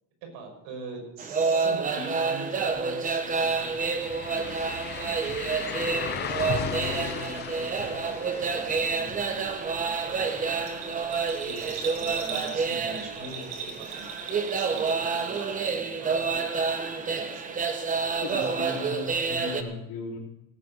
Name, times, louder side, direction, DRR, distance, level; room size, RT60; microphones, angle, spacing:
voice 1, 0.2-17.6, right 2 dB, 70° right, 1 dB, 6.0 m, -43 dB
sound 1, 1.2-19.6, right 5 dB, 20° right, 0.9 m, -29 dB
sound 2, 2.7-2.8 3.1-12.9 13.3-13.4 16.2-16.3, left 9 dB, 25° left, 0.6 m, -38 dB
Bell, 10.6-15.7 16.0-16.8 17.1-17.2, right 6 dB, 55° right, 3.8 m, -40 dB
voice 2, 18.2-20.2, left 3 dB, 50° left, -7 dB, 3.6 m, -36 dB
17.5 x 8.3 x 6.6 m, 0.90 s
cardioid pair, 165°, 42 cm